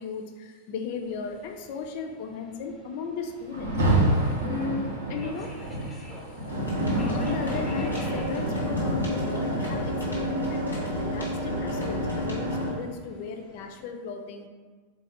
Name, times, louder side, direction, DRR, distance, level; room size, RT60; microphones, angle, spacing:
voice 1, 0.0-3.7 4.0-5.6 6.9-14.5, left 5 dB, 45° left, 4 dB, 0.3 m, -36 dB
Subway metro underground, 1.0-13.9, left 1 dB, 5° left, 0.7 m, -48 dB
Rain, 3.5-12.6, right 1 dB, 65° right, 0.5 m, -30 dB
sound 1, 6.5-12.7, equal, 90° right, 1.1 m, -30 dB
4.0 x 2.2 x 2.8 m, 1.4 s
figure-of-eight pair, 90°, 0 cm